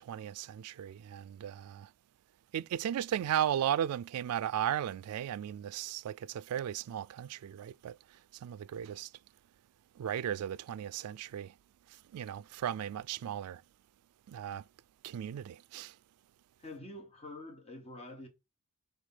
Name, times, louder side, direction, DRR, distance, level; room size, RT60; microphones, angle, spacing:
voice 1, 0.0-1.9 2.5-9.1 10.0-11.5 11.9-13.6 14.3-14.6 15.0-16.0, right 10 dB, 85° right, 0.3 m, -36 dB
voice 2, 16.6-18.3, left 2 dB, 30° left, 1.2 m, -46 dB
4.9 x 3.5 x 5.6 m
head